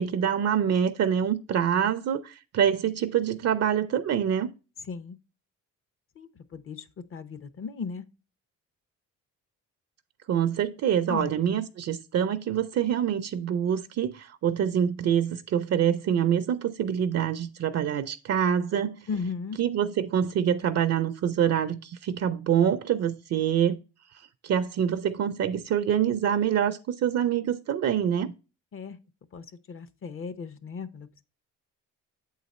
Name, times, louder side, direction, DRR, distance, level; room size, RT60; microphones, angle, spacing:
voice 1, 0.0-4.5 10.3-19.1 19.6-23.8 24.4-28.3, right 9 dB, 55° right, 0.5 m, -25 dB
voice 2, 4.9-5.2 6.2-6.8 7.1-8.0 11.1-11.3 19.1-19.6 28.7-29.0 29.3-31.2, left 5 dB, 45° left, 0.7 m, -36 dB
7.8 x 4.0 x 4.1 m
cardioid pair, 90°, 30 cm